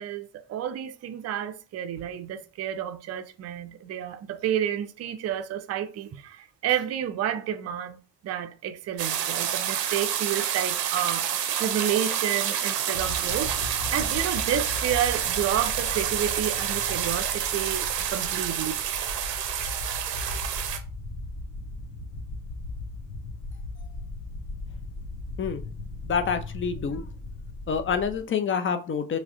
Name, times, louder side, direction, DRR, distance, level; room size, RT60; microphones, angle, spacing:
voice 1, 0.0-8.0 8.2-11.3 11.6-18.7, right 10 dB, 35° right, 0.5 m, -30 dB
sound 1, 9.0-20.8, right 9 dB, 85° right, 0.7 m, -28 dB
sound 2, 12.9-28.2, left 2 dB, 45° left, 1.4 m, -38 dB
voice 2, 26.0-27.1 27.7-29.2, left 6 dB, 25° left, 0.6 m, -27 dB
4.7 x 2.3 x 3.5 m
figure-of-eight pair, 45°, 47 cm